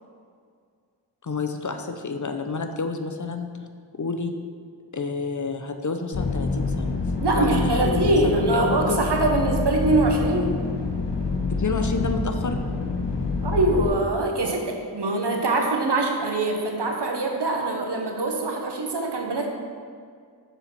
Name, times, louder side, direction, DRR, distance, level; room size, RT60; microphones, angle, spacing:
voice 1, 1.2-3.5 4.0-4.3 4.9-6.9 7.3-9.0 11.5-12.6, left 4 dB, 45° left, 6 dB, 0.6 m, -29 dB
sound 1, 6.1-13.9, left 3 dB, 70° left, 1.0 m, -27 dB
voice 2, 7.2-10.6 13.4-19.5, right 2 dB, 70° right, 1 dB, 1.1 m, -23 dB
7.1 x 4.1 x 5.7 m, 2.1 s
wide cardioid pair, 45°, 43 cm